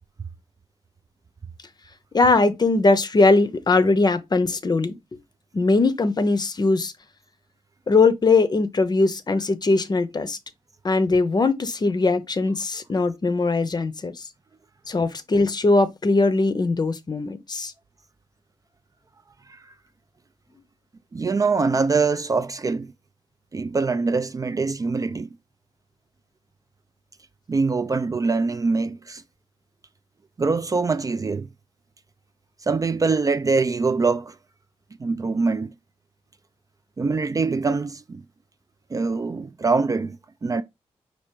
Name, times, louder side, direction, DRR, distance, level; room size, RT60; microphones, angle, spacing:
voice 1, 2.1-4.9 5.5-6.9 7.9-10.4 10.8-14.3 14.9-17.7, left 3 dB, 35° left, 0.6 m, -20 dB
voice 2, 21.1-22.9 23.5-25.4 27.5-29.2 30.4-31.5 32.6-34.4 35.0-35.7 37.0-38.2 38.9-40.6, right 4 dB, 30° right, 0.3 m, -23 dB
4.8 x 2.4 x 4.5 m
cardioid pair, 70°, 12 cm